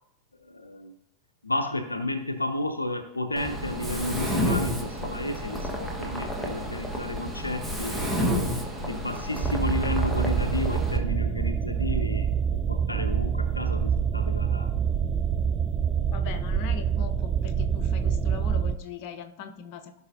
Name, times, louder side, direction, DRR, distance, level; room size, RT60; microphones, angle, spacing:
voice 1, 0.4-0.9 1.4-8.1 8.8-12.3 12.7-14.7, left 2 dB, 80° left, 7 dB, 0.6 m, -32 dB
Mechanisms, 3.4-11.0, equal, 5° right, 1.3 m, -30 dB
sound 1, 9.4-18.7, right 7 dB, 20° right, 0.4 m, -26 dB
voice 2, 16.1-20.0, left 7 dB, 45° left, 6 dB, 0.9 m, -40 dB
15.0 x 5.5 x 2.6 m, 0.79 s
figure-of-eight pair, 90°, 0 cm